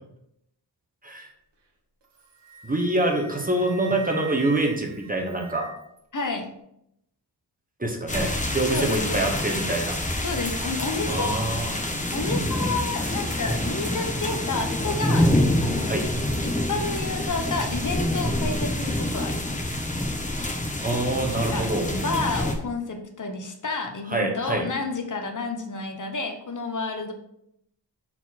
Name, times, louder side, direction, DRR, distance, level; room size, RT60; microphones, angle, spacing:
Wind instrument woodwind instrument, 2.0-6.0, right 4 dB, 75° right, 1.2 m, -42 dB
voice 1, 2.6-5.7 7.8-10.0 11.1-11.7 15.9-16.0 20.8-21.9 24.1-24.6, right 2 dB, 20° right, 1 dB, 1.1 m, -25 dB
voice 2, 6.1-6.5 8.7-9.3 10.2-11.4 11.9-15.3 15.6-16.0 16.4-19.7 21.4-27.1, left 3 dB, 45° left, 4 dB, 1.1 m, -30 dB
sound 1, 8.1-22.6, left 1 dB, 15° left, 1.1 m, -26 dB
6.9 x 4.4 x 4.3 m, 0.77 s
wide cardioid pair, 130°, 42 cm